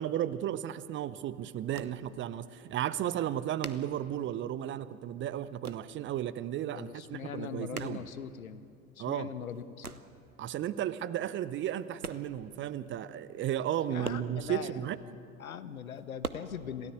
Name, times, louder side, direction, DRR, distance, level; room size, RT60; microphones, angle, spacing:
voice 1, 0.0-8.0 9.0-9.3 10.4-15.0, right 11 dB, 25° right, 16 dB, 0.7 m, -34 dB
sound 1, 1.4-2.3 2.7-2.8 3.0-4.8 5.0-6.0 6.3-6.8 7.1-8.8 9.2-10.2 11.0-11.1 11.6-12.6 12.8-12.9 13.2-13.3 13.6-15.0 15.5-16.3, right 4 dB, 90° right, 0.9 m, -43 dB
voice 2, 6.8-8.7 9.0-10.0 13.9-16.9, left 8 dB, 75° left, 13 dB, 1.2 m, -41 dB
27.0 x 17.0 x 8.1 m, 2.6 s
figure-of-eight pair, 80°, 43 cm